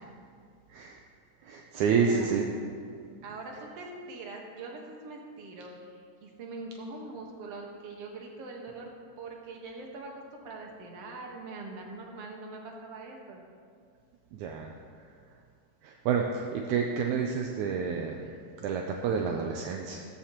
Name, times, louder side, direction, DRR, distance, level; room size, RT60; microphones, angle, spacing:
voice 1, 1.4-2.5 14.3-15.1 15.8-20.1, right 6 dB, 75° right, 2 dB, 1.9 m, -29 dB
voice 2, 2.1-2.4 3.2-8.9 9.2-13.4, right 3 dB, 55° right, 1 dB, 2.2 m, -43 dB
14.5 x 14.0 x 3.0 m, 2.2 s
omnidirectional pair, 3.7 m